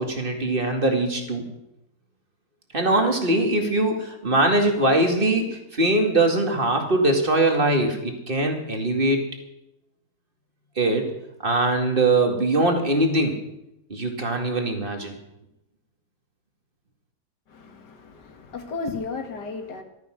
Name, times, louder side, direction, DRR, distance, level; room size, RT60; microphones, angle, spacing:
voice 1, 0.0-1.4 2.7-9.2 10.8-11.1 11.4-13.4 13.9-15.2, right 2 dB, 30° right, 3 dB, 2.4 m, -22 dB
voice 2, 17.5-19.8, left 4 dB, 80° left, 5 dB, 2.4 m, -34 dB
14.5 x 13.0 x 6.3 m, 0.88 s
omnidirectional pair, 1.8 m